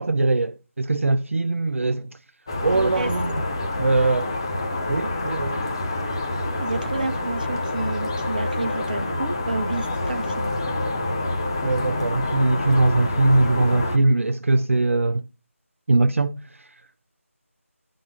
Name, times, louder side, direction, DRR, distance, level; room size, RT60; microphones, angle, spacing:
voice 1, 0.0-2.1 2.6-3.4 3.8-4.3 4.9-5.6 9.1-9.2 11.6-15.3 15.9-16.7, right 2 dB, 65° right, 0.4 m, -21 dB
sound 1, 2.5-14.0, left 2 dB, 20° left, 0.6 m, -27 dB
voice 2, 2.7-3.1 6.6-10.5, right 2 dB, 35° right, 1.0 m, -30 dB
9.7 x 3.8 x 5.4 m
figure-of-eight pair, 165°, 8 cm